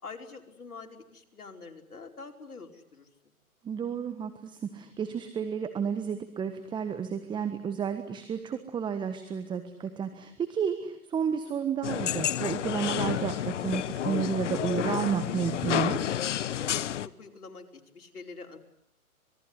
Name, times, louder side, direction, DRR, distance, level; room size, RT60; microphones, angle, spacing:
voice 1, 0.0-3.1 16.5-18.6, left 4 dB, 85° left, 3 dB, 5.0 m, -46 dB
voice 2, 3.6-16.0, right 7 dB, 10° right, 9 dB, 1.4 m, -31 dB
sound 1, 11.8-17.1, left 11 dB, 55° left, 1.1 m, -30 dB
26.5 x 21.5 x 9.9 m, 0.70 s
hypercardioid pair, 140°, 44 cm